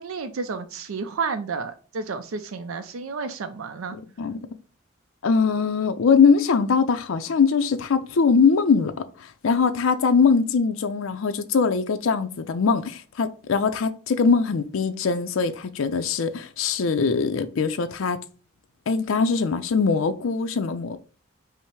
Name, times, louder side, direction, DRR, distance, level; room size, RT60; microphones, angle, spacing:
voice 1, 0.0-4.0, right 4 dB, 85° right, 0.5 m, -31 dB
voice 2, 5.2-8.9 9.2-18.2 18.9-21.0, left 5 dB, 75° left, 0.4 m, -22 dB
5.5 x 2.1 x 4.6 m
head